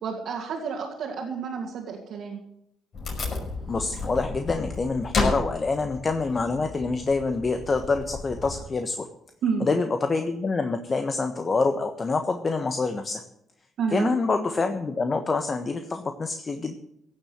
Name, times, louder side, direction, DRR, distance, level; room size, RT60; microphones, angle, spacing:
voice 1, 0.0-2.4 9.4-9.7 13.8-14.1, right 6 dB, 65° right, -2 dB, 2.5 m, -30 dB
Wood, 2.9-8.7, left 3 dB, 55° left, 5.7 m, -32 dB
voice 2, 3.7-9.1 9.6-13.2 13.9-16.7, left 3 dB, 35° left, 7 dB, 1.3 m, -26 dB
17.0 x 7.3 x 8.0 m, 0.77 s
hypercardioid pair, 50°, 0 cm